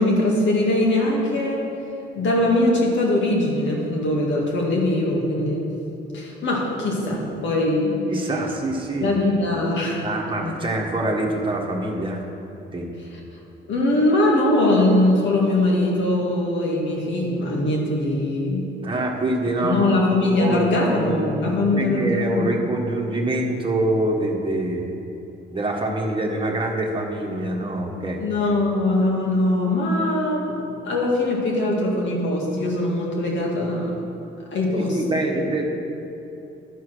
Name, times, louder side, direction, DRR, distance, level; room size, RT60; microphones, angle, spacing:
voice 1, 0.0-1.6 2.2-5.7 6.1-8.0 9.0-10.0 10.4-10.7 13.7-18.7 19.6-22.5 28.2-34.0 34.5-35.0, left 1 dB, 70° left, -2 dB, 2.1 m, -21 dB
voice 2, 8.1-9.2 10.0-12.2 12.7-12.9 18.8-20.0 20.4-24.8 25.5-28.2 34.7-35.6, right 1 dB, 25° right, 0 dB, 1.5 m, -25 dB
11.5 x 4.8 x 6.3 m, 2.8 s
cardioid pair, 90°, 20 cm